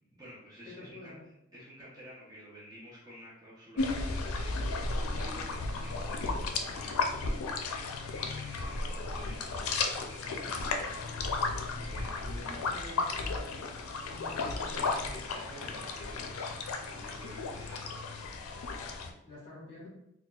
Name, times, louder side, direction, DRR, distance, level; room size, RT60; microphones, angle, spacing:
voice 1, 0.1-1.2 1.5-7.4 8.1-10.6 11.8-12.6 14.7-18.1, equal, 15° right, -7 dB, 0.6 m, -51 dB
voice 2, 0.6-1.2 12.4-13.7 14.0-15.1 19.2-19.9, left 2 dB, 25° left, -6 dB, 1.3 m, -49 dB
sound 1, 3.8-19.1, left 3 dB, 90° left, 0.4 m, -34 dB
4.0 x 2.2 x 2.3 m, 0.83 s
head